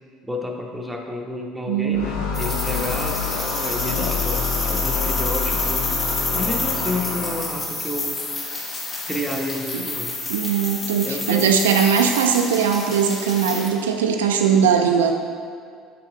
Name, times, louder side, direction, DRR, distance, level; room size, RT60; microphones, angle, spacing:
voice 1, 0.2-5.9 6.3-8.2 9.1-10.1 11.0-11.5, left 1 dB, 5° right, 0 dB, 0.8 m, -30 dB
voice 2, 1.7-2.1 9.7-9.8 10.3-15.1, right 7 dB, 70° right, 4 dB, 0.3 m, -20 dB
sound 1, 1.9-7.7, left 5 dB, 65° left, 0.6 m, -27 dB
sound 2, 2.3-13.7, left 3 dB, 30° left, 1.1 m, -29 dB
5.6 x 5.5 x 3.7 m, 2.2 s
figure-of-eight pair, 60°, 0 cm